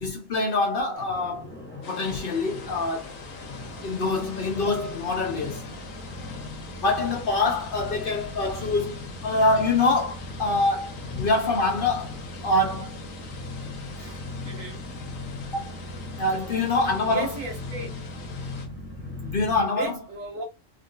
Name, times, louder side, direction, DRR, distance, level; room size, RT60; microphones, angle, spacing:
voice 1, 0.0-1.5 1.9-3.1 3.8-5.7 6.8-12.1 12.4-13.0 15.5-15.7 16.2-17.4 19.2-20.0, left 2 dB, 50° left, 0.7 m, -25 dB
sound 1, 0.9-19.7, left 2 dB, 10° left, 0.6 m, -39 dB
sound 2, 1.8-18.7, left 4 dB, 80° left, 1.3 m, -44 dB
voice 2, 14.0-14.8 17.0-17.9 19.7-20.4, right 2 dB, 80° right, 1.5 m, -36 dB
3.6 x 2.4 x 2.3 m
omnidirectional pair, 1.4 m